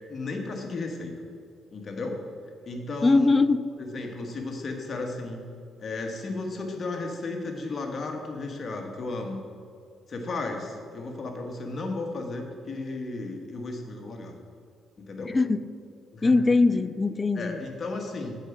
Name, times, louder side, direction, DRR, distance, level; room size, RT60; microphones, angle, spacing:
voice 1, 0.1-1.1 1.7-2.2 2.7-3.3 3.8-5.4 5.8-9.4 10.1-14.3 15.0-15.3 16.1-16.3 17.3-18.4, left 3 dB, 45° left, 1.5 m, -34 dB
voice 2, 3.0-3.7 15.3-15.7 16.2-17.6, left 3 dB, 25° left, 0.3 m, -22 dB
7.8 x 5.0 x 7.3 m
cardioid pair, 90°, 0 cm